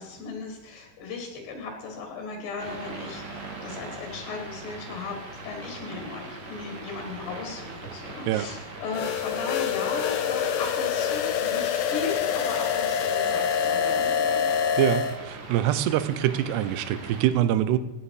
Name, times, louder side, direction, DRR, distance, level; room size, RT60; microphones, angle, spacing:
voice 1, 0.0-5.2 5.4-14.6, left 4 dB, 75° left, 3 dB, 4.1 m, -36 dB
sound 1, 2.6-17.3, right 2 dB, 55° right, 1.1 m, -41 dB
sound 2, 8.9-15.2, left 8 dB, 90° left, 3.1 m, -26 dB
voice 2, 14.8-17.8, right 12 dB, 80° right, 13 dB, 2.8 m, -24 dB
15.0 x 9.6 x 4.8 m, 1.0 s
omnidirectional pair, 4.8 m